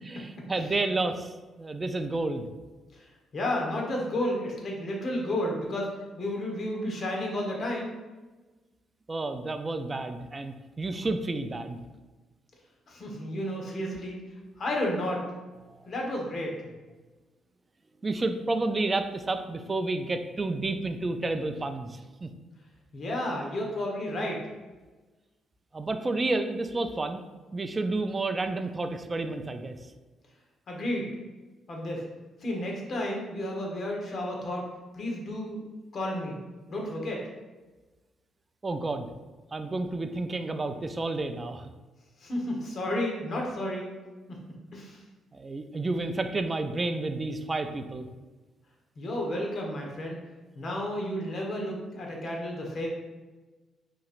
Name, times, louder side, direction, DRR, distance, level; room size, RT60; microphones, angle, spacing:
voice 1, 0.0-2.5 9.1-11.8 18.0-22.3 25.7-27.2 27.5-29.8 38.6-39.1 39.5-41.7 45.3-48.1, right 2 dB, 25° right, 8 dB, 0.3 m, -30 dB
voice 2, 3.3-5.9 6.2-7.9 12.9-14.2 14.6-15.2 15.8-16.7 22.9-24.4 30.7-31.1 31.7-32.0 32.4-34.7 34.9-35.7 35.9-36.4 36.7-37.3 42.2-43.9 44.7-45.0 49.0-50.2 50.5-52.9, left 1 dB, 50° left, -1 dB, 1.2 m, -32 dB
5.4 x 3.1 x 2.5 m, 1.2 s
cardioid pair, 90°, 0 cm